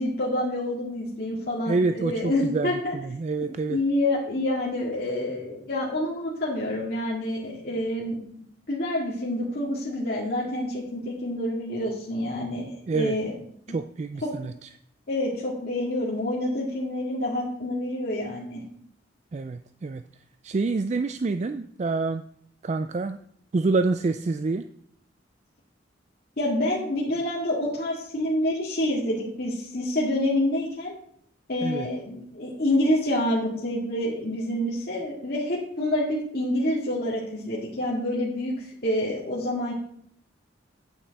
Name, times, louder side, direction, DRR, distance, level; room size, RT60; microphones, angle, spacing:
voice 1, 0.0-3.0 3.7-8.3 8.7-13.4 15.1-18.6 26.4-30.9 31.5-39.7, left 1 dB, 50° left, -6 dB, 2.2 m, -27 dB
voice 2, 1.7-3.8 12.9-13.2 13.7-14.7 19.3-20.0 20.4-22.2 22.6-23.2 23.5-24.7 31.6-31.9, right 3 dB, 35° right, 9 dB, 0.3 m, -27 dB
9.1 x 8.9 x 4.1 m, 0.66 s
head